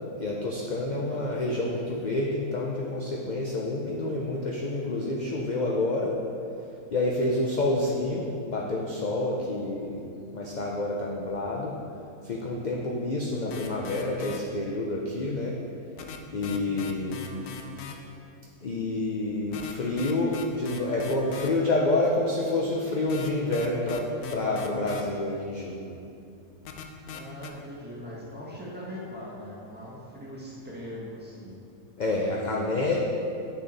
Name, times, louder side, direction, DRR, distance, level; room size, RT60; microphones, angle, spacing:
voice 1, 0.2-6.2 6.9-10.0 10.3-11.8 12.2-15.6 16.3-17.2 18.6-25.9 32.0-33.0, left 2 dB, 45° left, -2 dB, 0.6 m, -28 dB
sound 1, 13.5-14.4 16.0-17.9 19.4-21.5 23.1-25.0 26.6-27.5, left 7 dB, 85° left, 1.2 m, -39 dB
voice 2, 16.4-16.9 27.1-31.5, equal, 5° right, -7 dB, 1.4 m, -41 dB
8.5 x 6.5 x 4.0 m, 2.6 s
omnidirectional pair, 1.6 m